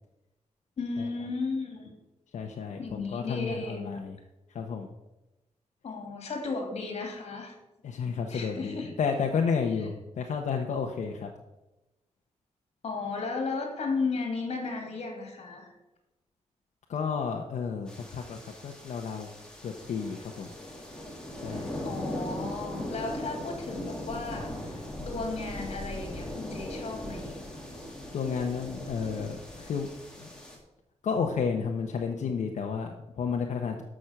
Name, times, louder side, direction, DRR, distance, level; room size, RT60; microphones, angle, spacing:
voice 1, 0.8-1.9 2.8-3.9 5.8-7.5 8.3-8.9 12.8-15.7 21.8-24.8 25.0-27.4, left 3 dB, 60° left, 3 dB, 2.8 m, -34 dB
voice 2, 2.3-4.2 4.5-4.9 7.8-11.3 16.9-19.3 19.6-20.5 21.4-21.7 28.1-29.9 30.1-30.3 31.0-33.8, left 6 dB, 90° left, 2 dB, 1.0 m, -31 dB
sound 1, 17.9-30.6, left 1 dB, 5° left, 2.2 m, -39 dB
13.0 x 6.3 x 6.0 m, 0.99 s
wide cardioid pair, 165°, 12 cm